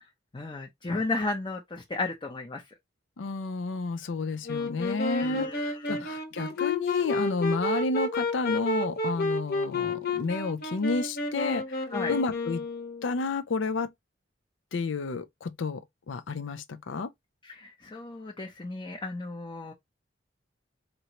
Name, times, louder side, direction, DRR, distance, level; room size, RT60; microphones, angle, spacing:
voice 1, 0.3-2.6 5.2-6.0 11.9-12.1 17.6-19.7, left 3 dB, 25° left, 0.7 m, -34 dB
voice 2, 3.2-11.6 12.1-12.6 13.0-13.9 14.7-17.1, left 3 dB, 90° left, 0.6 m, -31 dB
Wind instrument woodwind instrument, 4.4-13.2, left 2 dB, 60° left, 1.2 m, -31 dB
4.3 x 2.6 x 2.9 m
head